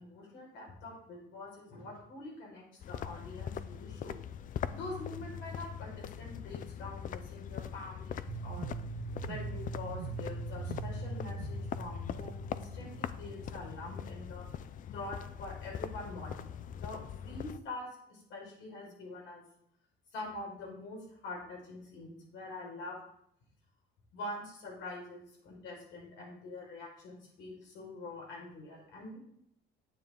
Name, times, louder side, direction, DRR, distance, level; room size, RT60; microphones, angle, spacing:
voice 1, 0.0-4.2 4.7-8.7 9.2-14.4 14.9-19.4 20.1-23.0 24.1-29.2, left 2 dB, 80° left, -2 dB, 4.7 m, -45 dB
sound 1, 2.8-17.6, left 8 dB, 40° left, 0.4 m, -41 dB
sound 2, 8.3-14.3, right 7 dB, 80° right, 0.6 m, -43 dB
9.4 x 8.9 x 3.7 m, 0.69 s
cardioid pair, 140°, 20 cm